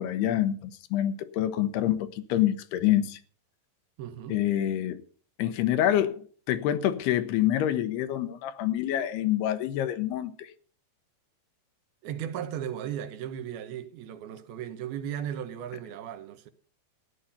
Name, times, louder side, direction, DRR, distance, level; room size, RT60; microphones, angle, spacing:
voice 1, 0.0-3.2 4.3-5.0 5.4-10.5, left 12 dB, 80° left, 2.9 m, -27 dB
voice 2, 4.0-4.4 12.0-16.5, right 9 dB, 75° right, 2.8 m, -36 dB
14.5 x 10.0 x 5.6 m
omnidirectional pair, 4.7 m